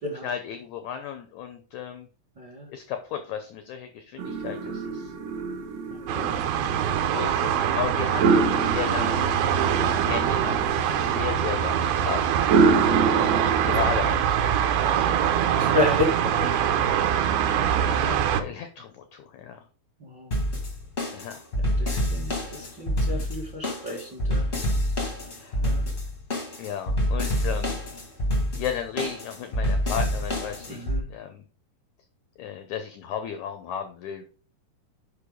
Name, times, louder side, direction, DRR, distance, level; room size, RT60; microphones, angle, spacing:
voice 1, 0.2-2.1 2.7-5.1 6.0-6.5 7.1-12.8 13.1-13.4 13.6-15.2 17.6-19.6 21.1-21.4 25.4-25.6 26.6-27.8 28.6-31.4 32.4-34.2, left 8 dB, 80° left, 7 dB, 1.7 m, -35 dB
voice 2, 2.4-2.7 6.1-6.4 14.9-17.3 20.0-20.3 21.8-24.5 25.6-25.8 30.7-31.0, left 1 dB, 50° right, -1 dB, 1.3 m, -31 dB
sound 1, 4.2-13.8, right 4 dB, 70° right, 1.5 m, -27 dB
sound 2, 6.1-18.4, right 9 dB, 90° right, 2.7 m, -24 dB
Funk Shuffle E, 20.3-31.0, equal, 45° left, 0.6 m, -27 dB
6.5 x 5.3 x 5.0 m, 0.40 s
omnidirectional pair, 4.3 m